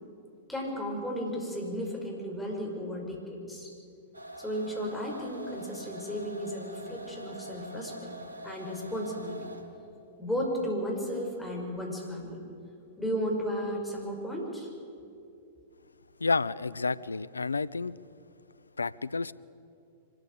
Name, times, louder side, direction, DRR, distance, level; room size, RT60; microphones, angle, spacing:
voice 1, 0.5-3.7 4.4-8.2 8.4-9.6 10.2-12.4 13.0-14.7, equal, 5° left, -1 dB, 5.3 m, -34 dB
sound 1, 4.1-9.8, right 1 dB, 85° right, 1.9 m, -44 dB
voice 2, 16.2-17.9 18.8-19.3, left 4 dB, 80° left, 20 dB, 0.5 m, -30 dB
24.5 x 13.5 x 8.7 m, 2.6 s
figure-of-eight pair, 100°, 0 cm